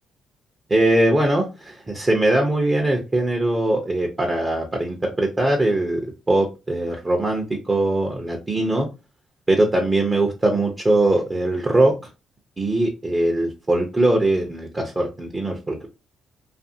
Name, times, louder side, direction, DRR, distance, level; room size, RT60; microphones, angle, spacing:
voice 1, 0.7-6.0 6.3-8.9 9.5-11.9 12.6-15.9, right 1 dB, 20° right, 1 dB, 0.6 m, -21 dB
2.6 x 2.5 x 2.6 m, 0.28 s
cardioid pair, 90°, 0 cm